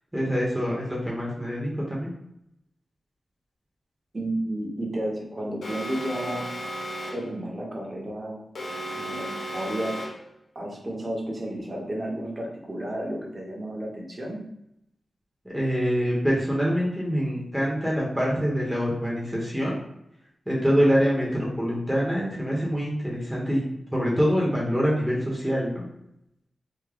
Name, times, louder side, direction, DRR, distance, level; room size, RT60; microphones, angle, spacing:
voice 1, 0.1-2.1 15.4-19.8 20.5-23.6 23.9-25.9, equal, 5° right, -5 dB, 0.8 m, -25 dB
voice 2, 4.1-6.5 7.1-8.4 9.0-10.0 10.5-14.4, right 1 dB, 30° right, -2 dB, 0.8 m, -32 dB
Alarm, 5.6-7.4 8.5-10.3, equal, 75° left, 0.7 m, -34 dB
3.5 x 2.1 x 3.4 m, 0.80 s
wide cardioid pair, 130°, 0 cm